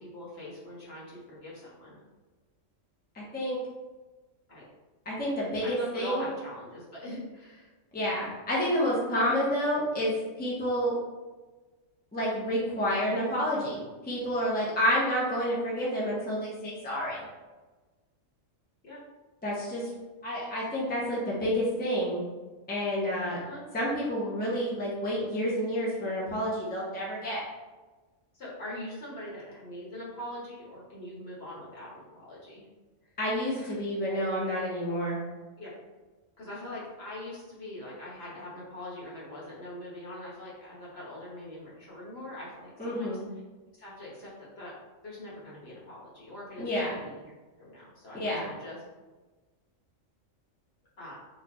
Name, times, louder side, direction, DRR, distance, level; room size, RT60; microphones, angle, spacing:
voice 1, 0.0-2.0 4.5-4.6 5.6-7.7 13.1-13.2 15.1-15.2 18.8-19.0 23.4-23.6 28.3-32.6 33.0-33.1 33.5-33.8 35.6-35.7 36.4-43.2 43.8-44.7 45.0-47.2 47.6-48.8 51.0-51.2, left 1 dB, 55° left, -6 dB, 1.3 m, -42 dB
voice 2, 3.1-3.6 5.0-6.3 7.9-11.0 12.1-17.2 19.4-19.9 20.2-22.3 22.7-23.4 23.7-27.4 33.2-35.2 42.8-43.2 46.6-47.0 48.1-48.4, equal, 10° left, -6 dB, 0.6 m, -29 dB
4.3 x 2.4 x 2.9 m, 1.2 s
omnidirectional pair, 1.3 m